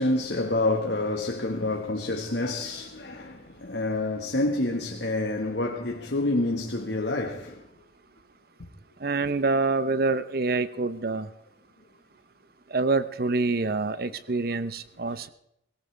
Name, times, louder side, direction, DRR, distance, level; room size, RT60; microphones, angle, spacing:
voice 1, 0.0-7.6, left 2 dB, 80° left, 1.5 m, -28 dB
voice 2, 9.0-11.3 12.7-15.3, right 3 dB, 60° right, 0.8 m, -26 dB
18.0 x 18.0 x 3.4 m
head